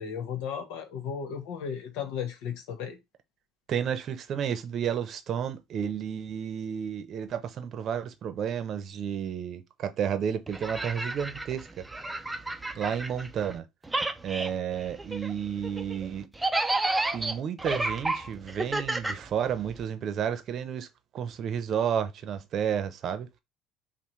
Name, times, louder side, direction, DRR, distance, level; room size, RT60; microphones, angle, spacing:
voice 1, 0.0-3.0, left 7 dB, 75° left, 1.1 m, -35 dB
voice 2, 3.7-11.7 12.8-13.6 14.2-16.3 17.1-20.9 21.1-23.4, right 8 dB, 50° right, 0.7 m, -31 dB
sound 1, 10.5-13.6 13.8-19.8, right 2 dB, 10° right, 0.5 m, -32 dB
5.6 x 2.2 x 3.1 m
supercardioid pair, 110°, 0 cm